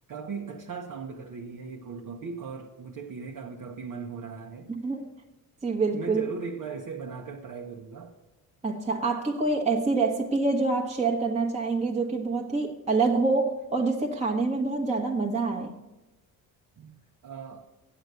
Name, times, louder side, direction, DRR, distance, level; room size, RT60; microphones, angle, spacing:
voice 1, 0.1-4.7 5.8-8.1 16.8-17.0 17.2-17.7, right 5 dB, 60° right, 1.0 m, -38 dB
voice 2, 4.7-5.1 5.6-6.3 8.6-15.7, right 3 dB, 15° right, 1.1 m, -26 dB
8.1 x 7.9 x 8.0 m
cardioid pair, 85°, 38 cm